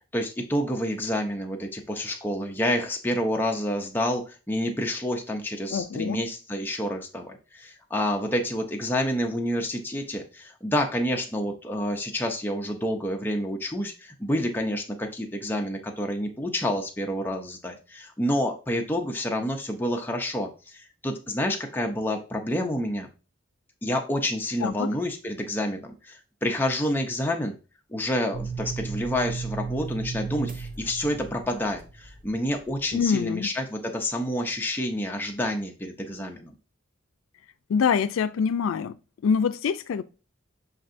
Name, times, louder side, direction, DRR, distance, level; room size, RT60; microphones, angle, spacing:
voice 1, 0.1-23.1 23.8-27.6 27.9-36.5, left 1 dB, 10° left, 0.5 m, -28 dB
voice 2, 5.7-6.2 24.6-24.9 32.9-33.5 37.7-38.9 39.2-40.0, left 6 dB, 85° left, 0.3 m, -25 dB
sound 1, 28.3-33.0, right 5 dB, 45° right, 0.6 m, -35 dB
6.5 x 2.6 x 2.5 m
head